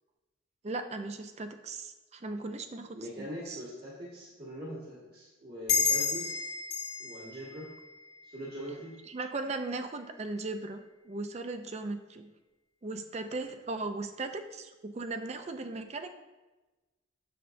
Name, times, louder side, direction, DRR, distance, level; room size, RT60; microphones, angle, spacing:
voice 1, 0.6-3.6 9.1-12.3 12.8-16.1, right 3 dB, 30° right, 8 dB, 0.4 m, -38 dB
voice 2, 2.9-6.5 7.0-7.8 8.2-9.0, equal, 50° right, -6 dB, 1.5 m, -42 dB
sound 1, 5.7-8.8, left 5 dB, 70° left, 1.3 m, -32 dB
7.7 x 6.6 x 2.6 m, 1.1 s
head